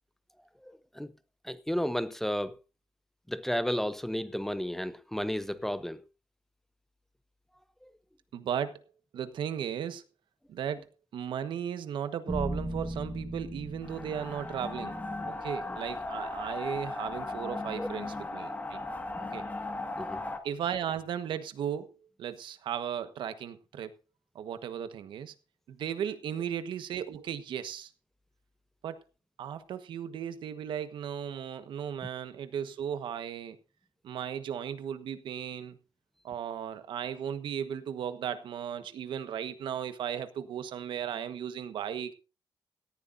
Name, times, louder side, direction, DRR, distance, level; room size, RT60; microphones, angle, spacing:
voice 1, 0.6-1.1 1.4-2.6 3.3-6.0 7.8-7.9 15.7-15.8 17.8-17.9 19.1-19.4 20.0-20.2, equal, 5° left, 0.6 m, -33 dB
voice 2, 8.3-8.8 9.1-10.0 10.5-10.9 11.1-15.0 15.2-19.0 19.3-19.4 20.4-23.9 24.3-25.3 25.7-27.9 28.8-29.0 29.4-33.6 34.0-35.8 36.2-42.1, right 9 dB, 80° right, 1.3 m, -36 dB
sound 1, 12.3-16.5, right 1 dB, 10° right, 1.7 m, -39 dB
sound 2, 13.8-20.4, left 2 dB, 20° left, 1.7 m, -37 dB
18.0 x 14.0 x 2.6 m
wide cardioid pair, 145°, 8 cm